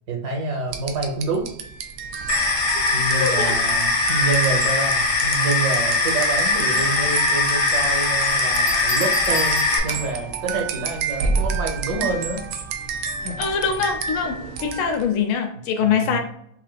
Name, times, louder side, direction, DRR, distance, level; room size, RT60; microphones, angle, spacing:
voice 1, 0.1-1.5 2.9-12.4 13.2-13.3 15.8-16.2, right 3 dB, 60° right, 1 dB, 1.4 m, -27 dB
sound 1, 0.7-15.1, right 5 dB, 85° right, 1.4 m, -30 dB
sound 2, 2.3-9.8, left 3 dB, 50° left, 0.9 m, -21 dB
voice 2, 3.2-3.5 13.4-16.2, left 6 dB, 85° left, 4 dB, 1.6 m, -23 dB
sound 3, 8.3-10.3 11.9-12.2, left 1 dB, 65° left, 1.5 m, -33 dB
6.1 x 2.5 x 2.2 m, 0.71 s
omnidirectional pair, 2.2 m